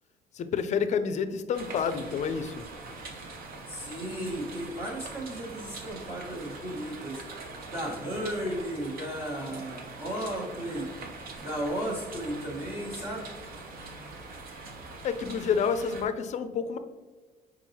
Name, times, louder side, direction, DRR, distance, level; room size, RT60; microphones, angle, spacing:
voice 1, 0.3-2.6 15.0-16.8, left 6 dB, 45° left, 11 dB, 0.4 m, -29 dB
sound 1, 1.5-16.0, right 3 dB, 60° right, 0.9 m, -43 dB
voice 2, 3.7-7.2 7.7-10.9 11.4-13.3, equal, 25° right, -8 dB, 1.3 m, -34 dB
4.5 x 4.1 x 2.8 m, 1.3 s
cardioid pair, 110°, 17 cm